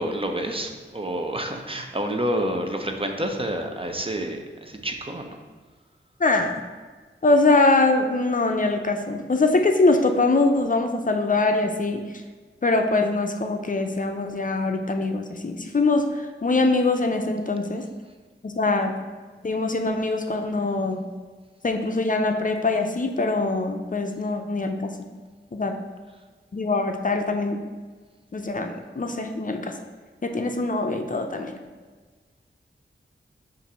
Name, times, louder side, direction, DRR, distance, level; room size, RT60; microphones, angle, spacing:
voice 1, 0.0-5.4, right 1 dB, 25° right, 4 dB, 0.7 m, -28 dB
voice 2, 6.2-6.6 7.2-12.0 12.6-17.8 18.4-18.9 19.4-21.1 21.6-24.9 25.5-25.7 26.5-27.6 28.3-29.7 30.2-31.5, left 3 dB, 40° left, 4 dB, 0.5 m, -23 dB
7.0 x 2.6 x 5.5 m, 1.4 s
wide cardioid pair, 65°, 20 cm